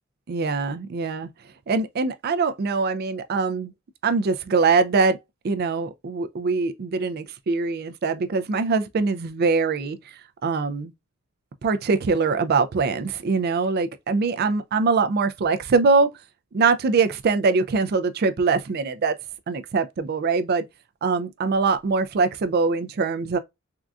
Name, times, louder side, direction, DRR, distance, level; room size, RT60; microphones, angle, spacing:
voice 1, 0.3-1.3 1.7-3.7 4.0-5.2 5.4-10.0 10.4-10.9 11.6-16.1 16.5-19.1 19.5-20.6 21.0-23.4, right 4 dB, 45° right, 0.4 m, -23 dB
3.7 x 2.3 x 2.4 m
head